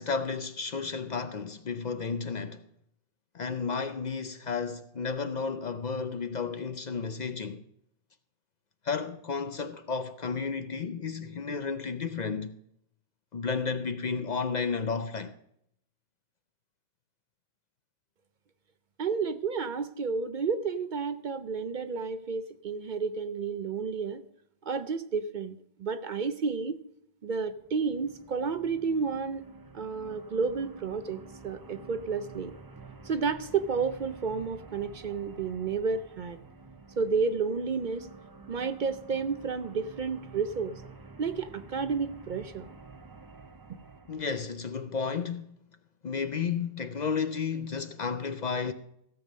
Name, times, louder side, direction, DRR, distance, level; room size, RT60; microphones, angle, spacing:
voice 1, 0.0-2.6 3.3-7.6 8.8-12.6 13.3-15.4 44.1-45.6 46.0-48.7, left 5 dB, 50° left, 0.6 m, -32 dB
voice 2, 19.0-24.2 24.6-26.8 27.2-29.5 29.7-32.5 33.0-36.4 37.0-38.1 38.5-40.8 41.2-42.7, right 5 dB, 55° right, 0.7 m, -31 dB
sound 1, 27.5-44.5, right 3 dB, 25° right, 0.7 m, -50 dB
16.0 x 7.1 x 5.2 m
omnidirectional pair, 1.1 m